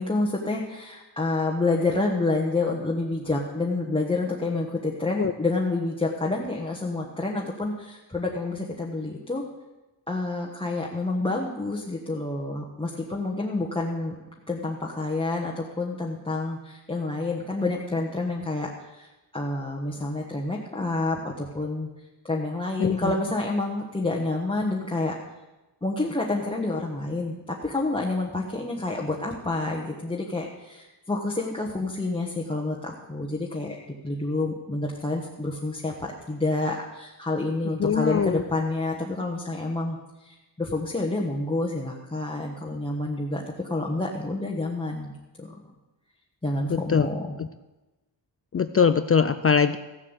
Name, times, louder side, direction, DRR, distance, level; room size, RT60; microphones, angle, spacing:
voice 1, 0.0-9.4 10.1-14.2 14.5-19.1 19.3-21.9 22.2-25.1 25.8-45.1 45.4-45.6 46.4-47.3, left 2 dB, 10° left, -3 dB, 1.2 m, -28 dB
voice 2, 22.8-23.1 37.8-38.4 46.7-47.1 47.4-47.5 48.5-49.8, left 6 dB, 35° left, 11 dB, 0.4 m, -22 dB
15.0 x 7.5 x 8.1 m, 1.1 s
wide cardioid pair, 160°, 43 cm